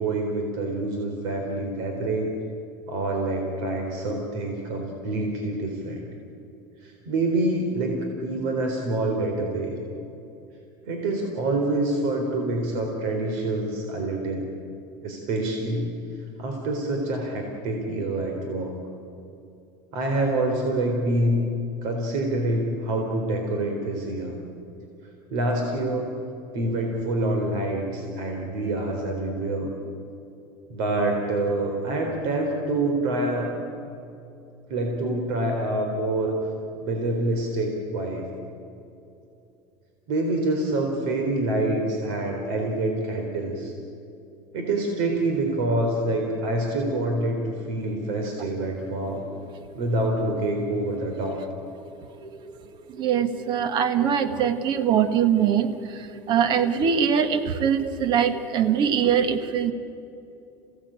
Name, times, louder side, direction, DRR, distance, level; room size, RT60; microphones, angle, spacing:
voice 1, 0.0-2.3 2.9-6.0 6.8-9.8 10.9-14.5 15.0-15.9 16.4-18.7 19.9-21.4 21.8-24.4 25.3-26.1 26.5-29.7 30.7-33.5 34.7-36.3 36.8-38.2 40.1-43.7 44.5-49.2 49.7-51.4, right 2 dB, 70° right, 2 dB, 4.0 m, -26 dB
voice 2, 53.0-59.7, right 8 dB, 45° right, 10 dB, 1.6 m, -22 dB
28.5 x 18.0 x 8.9 m, 2.8 s
supercardioid pair, 140°, 11 cm